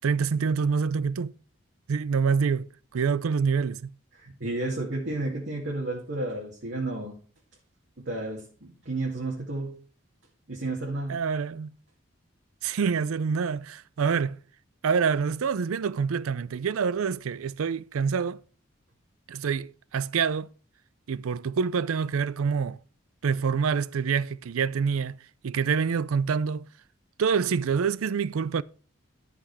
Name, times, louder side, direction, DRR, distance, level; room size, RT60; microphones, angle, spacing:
voice 1, 0.0-1.3 1.9-3.9 11.1-11.7 12.6-14.4 14.8-18.4 19.3-20.5 21.1-22.8 23.2-25.2 25.4-26.7 27.2-28.6, right 6 dB, 90° right, 0.5 m, -26 dB
voice 2, 4.2-7.2 8.0-9.8 10.5-11.2, right 2 dB, 60° right, 2.3 m, -32 dB
12.5 x 6.0 x 4.8 m
head